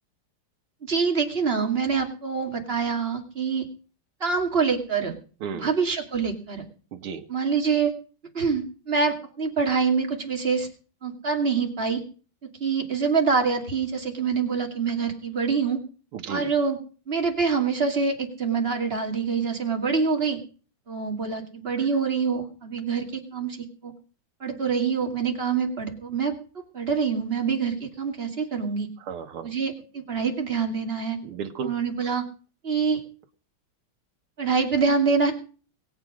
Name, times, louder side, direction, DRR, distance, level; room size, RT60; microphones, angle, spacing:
voice 1, 0.8-3.7 4.2-5.1 5.5-6.6 7.3-7.9 8.3-10.7 11.0-12.0 12.6-15.8 16.3-16.8 17.1-20.4 20.9-23.6 23.8-23.9 24.4-26.3 26.7-28.9 29.4-31.2 31.6-32.2 32.6-33.0 34.4-35.3, right 5 dB, 25° right, 3 dB, 2.5 m, -25 dB
voice 2, 5.4-5.7 6.9-7.2 16.1-16.5 29.1-29.5 31.2-31.7 32.0-32.2, right 6 dB, 80° right, 4 dB, 2.1 m, -34 dB
22.5 x 7.6 x 6.3 m, 0.39 s
omnidirectional pair, 2.4 m